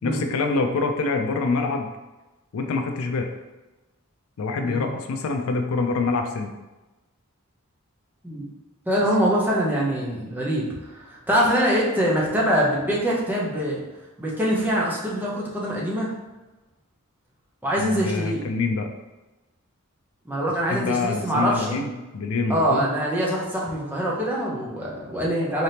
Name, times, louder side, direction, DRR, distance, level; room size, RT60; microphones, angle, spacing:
voice 1, 0.0-1.9 2.5-3.3 4.4-6.5 17.8-18.9 20.7-22.9, left 4 dB, 70° left, 5 dB, 0.4 m, -25 dB
voice 2, 8.9-10.7 11.0-13.8 14.2-16.1 17.6-18.5 20.3-21.8 22.5-25.6, equal, 10° right, -5 dB, 0.7 m, -24 dB
3.9 x 3.3 x 2.8 m, 1.1 s
head